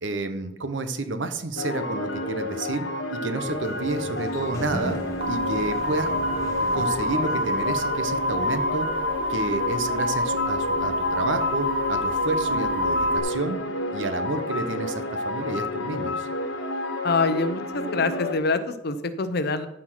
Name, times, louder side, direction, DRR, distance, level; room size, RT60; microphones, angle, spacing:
voice 1, 0.0-5.0 5.3-6.1 6.7-8.9 9.3-13.6 13.9-16.3, right 2 dB, 75° right, 8 dB, 1.0 m, -30 dB
sound 1, 1.6-18.3, left 1 dB, 70° left, 1.2 m, -30 dB
Sliding door, 3.3-8.5, equal, 20° left, 2.0 m, -39 dB
sound 2, 5.2-13.2, left 1 dB, 30° right, 1.1 m, -27 dB
voice 2, 17.0-19.7, left 3 dB, 55° left, 9 dB, 0.8 m, -25 dB
13.5 x 4.4 x 5.9 m, 0.87 s
head